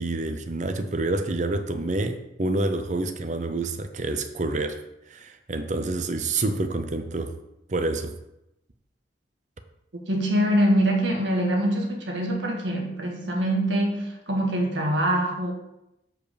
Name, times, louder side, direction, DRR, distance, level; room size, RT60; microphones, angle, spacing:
voice 1, 0.0-4.8 5.1-7.3 7.7-8.1, right 2 dB, 40° right, 8 dB, 0.6 m, -28 dB
voice 2, 10.1-15.5, right 1 dB, 85° right, 0 dB, 1.7 m, -24 dB
7.8 x 4.7 x 5.1 m, 0.88 s
head